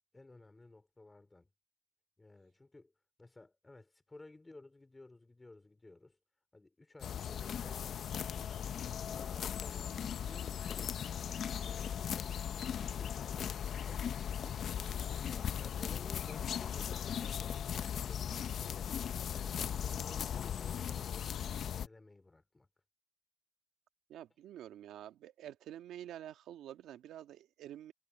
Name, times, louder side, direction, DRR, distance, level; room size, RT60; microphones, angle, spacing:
voice 1, 0.1-1.5 2.2-2.9 3.2-6.2 6.5-8.6 9.1-10.9 11.6-12.3 12.8-15.0 15.3-21.3 21.6-22.7, left 2 dB, 20° left, 4.1 m, -56 dB
sound 1, 7.0-21.9, left 8 dB, 60° left, 0.8 m, -38 dB
voice 2, 24.1-27.9, right 11 dB, 80° right, 1.6 m, -48 dB
cardioid pair, 90°, 0 cm